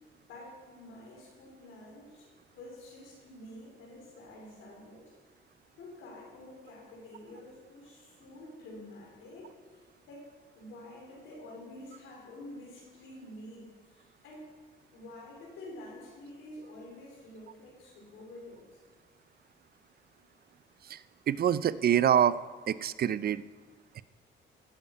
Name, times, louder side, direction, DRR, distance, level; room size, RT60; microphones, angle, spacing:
voice 1, 0.0-5.1 5.8-14.5 14.9-18.8, left 1 dB, 85° left, -1 dB, 4.3 m, -49 dB
voice 2, 21.3-22.4 22.7-23.4 24.0-24.1, right 10 dB, 50° right, 17 dB, 0.5 m, -25 dB
17.0 x 7.2 x 5.5 m, 1.5 s
cardioid pair, 90°, 20 cm